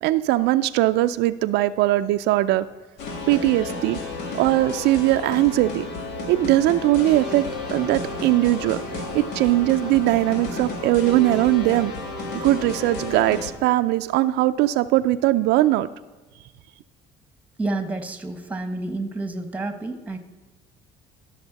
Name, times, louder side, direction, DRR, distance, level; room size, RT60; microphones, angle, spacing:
voice 1, 0.0-2.7 3.3-4.0 4.3-5.8 6.3-11.9 12.3-15.9, right 16 dB, 85° right, 11 dB, 0.4 m, -20 dB
sound 1, 3.0-13.5, left 2 dB, 85° left, 1.5 m, -32 dB
voice 2, 17.6-20.2, right 2 dB, 10° right, 8 dB, 1.1 m, -29 dB
14.0 x 6.5 x 4.0 m, 1.3 s
cardioid pair, 110°, 17 cm